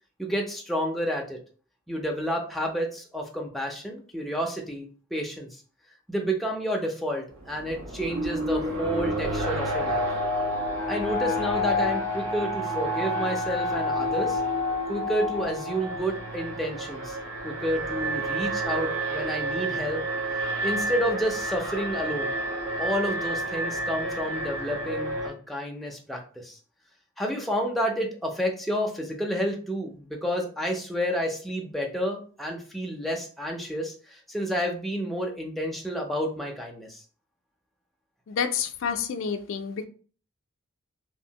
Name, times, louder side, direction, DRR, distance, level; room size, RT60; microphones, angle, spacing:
voice 1, 0.2-1.4 1.9-4.9 5.1-5.6 6.1-10.1 10.9-14.4 14.9-17.2 17.4-20.0 20.6-22.3 22.8-26.6 27.2-37.0, equal, ahead, 0 dB, 0.4 m, -30 dB
Alarm, 7.4-25.3, equal, 85° right, 0.8 m, -29 dB
voice 2, 38.3-39.9, left 6 dB, 70° left, 6 dB, 0.4 m, -29 dB
2.8 x 2.5 x 2.7 m, 0.41 s
head